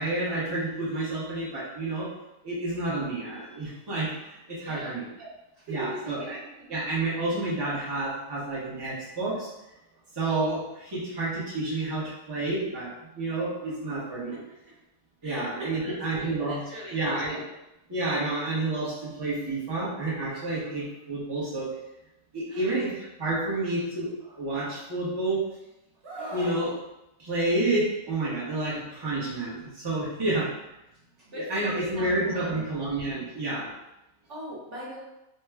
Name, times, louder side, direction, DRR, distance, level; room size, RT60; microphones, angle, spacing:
voice 1, 0.0-2.1 2.4-5.3 5.7-6.4 6.7-9.5 10.1-14.4 15.2-16.6 16.9-17.5 17.9-21.7 22.3-25.5 26.3-26.8 27.2-30.6 31.3-33.7, right 2 dB, 20° right, -7 dB, 0.7 m, -30 dB
voice 2, 4.6-5.0 5.5-6.7 15.2-17.3 22.5-22.7 31.2-32.6 34.3-35.0, right 1 dB, 50° right, -7 dB, 1.3 m, -40 dB
Screaming, 26.0-26.6 28.1-28.3, right 1 dB, 70° right, 1.3 m, -38 dB
3.2 x 2.2 x 3.4 m, 0.90 s
omnidirectional pair, 1.7 m